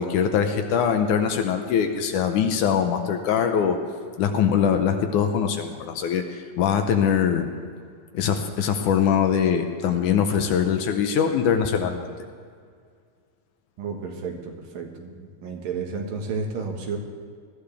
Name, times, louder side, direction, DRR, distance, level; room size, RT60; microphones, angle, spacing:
voice 1, 0.0-3.8 4.2-7.5 8.1-12.1, left 7 dB, 75° left, 6 dB, 2.1 m, -22 dB
voice 2, 13.8-17.0, right 5 dB, 80° right, 2 dB, 3.3 m, -32 dB
20.0 x 13.5 x 3.4 m, 2.1 s
omnidirectional pair, 4.0 m